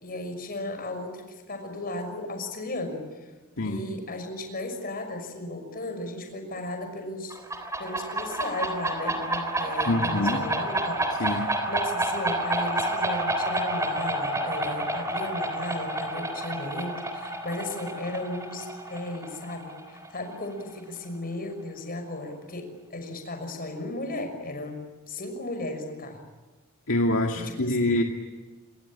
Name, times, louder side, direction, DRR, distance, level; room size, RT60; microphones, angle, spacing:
voice 1, 0.0-3.3 3.6-7.4 7.8-26.2 27.4-27.8, left 2 dB, 40° left, 6 dB, 6.0 m, -35 dB
sound 1, 7.3-20.7, right 1 dB, 15° right, 3.5 m, -29 dB
voice 2, 9.9-10.5 11.2-11.5 26.9-28.0, left 1 dB, 65° left, 2 dB, 2.1 m, -25 dB
27.0 x 23.5 x 8.7 m, 1.3 s
head